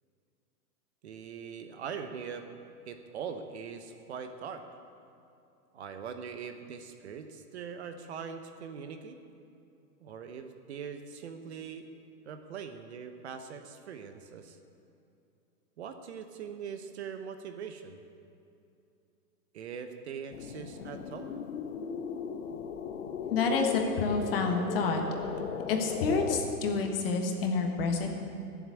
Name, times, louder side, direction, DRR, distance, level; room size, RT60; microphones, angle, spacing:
voice 1, 1.0-2.5 2.8-4.6 5.7-9.2 10.0-11.9 12.3-14.6 15.8-18.0 19.5-21.3, right 6 dB, 45° right, 8 dB, 0.9 m, -42 dB
sound 1, 20.3-26.4, left 7 dB, 55° left, 1.0 m, -37 dB
voice 2, 23.3-25.0 25.7-28.1, left 4 dB, 35° left, 3 dB, 1.4 m, -28 dB
14.0 x 7.4 x 8.5 m, 2.6 s
hypercardioid pair, 165°, 47 cm